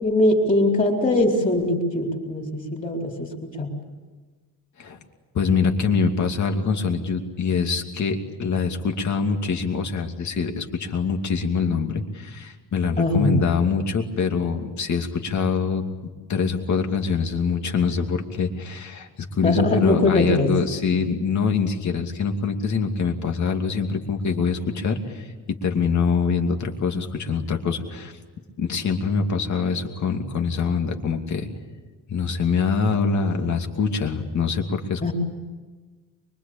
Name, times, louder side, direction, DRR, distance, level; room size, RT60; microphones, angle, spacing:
voice 1, 0.0-3.7 13.0-13.3 19.4-20.5 35.0-35.1, left 1 dB, 20° left, 1 dB, 4.2 m, -21 dB
voice 2, 5.3-15.8 16.3-28.1 28.6-31.5 32.1-35.1, left 5 dB, 45° left, 4 dB, 2.7 m, -24 dB
24.5 x 23.5 x 8.8 m, 1.4 s
cardioid pair, 175°, 39 cm